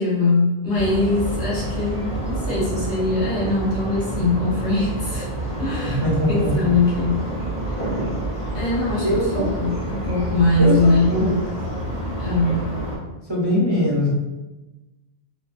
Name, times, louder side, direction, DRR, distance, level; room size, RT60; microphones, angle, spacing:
voice 1, 0.0-5.3 5.6-7.2 8.5-11.4 12.2-12.7, left 2 dB, 65° left, -7 dB, 1.2 m, -22 dB
sound 1, 0.8-13.0, right 1 dB, 40° left, 1.2 m, -28 dB
voice 2, 5.8-6.5 9.0-9.5 10.6-11.3 13.3-14.1, equal, 30° right, -7 dB, 0.8 m, -21 dB
3.1 x 2.3 x 2.4 m, 1.1 s
omnidirectional pair, 1.0 m